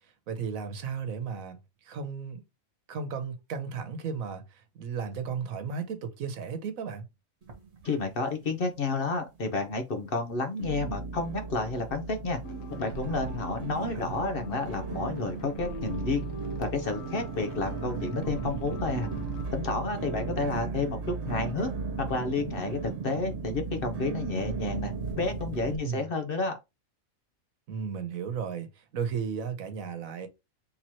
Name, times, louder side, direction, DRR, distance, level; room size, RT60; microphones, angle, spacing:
voice 1, 0.3-1.6 1.8-2.4 2.9-7.0 13.8-14.1 20.4-20.8 25.7-26.0 27.7-28.7 28.9-30.3, right 6 dB, 80° right, 1.3 m, -35 dB
sound 1, 7.4-8.4 8.6-9.3 9.8-9.9 10.6-25.8, right 4 dB, 55° right, 1.4 m, -36 dB
voice 2, 7.8-12.4 12.7-16.2 16.6-19.1 19.5-21.7 22.0-24.9 25.2-26.6, left 3 dB, 50° left, 0.8 m, -31 dB
sound 2, 12.4-19.5, right 1 dB, 75° left, 1.3 m, -42 dB
3.7 x 3.0 x 4.2 m
omnidirectional pair, 1.4 m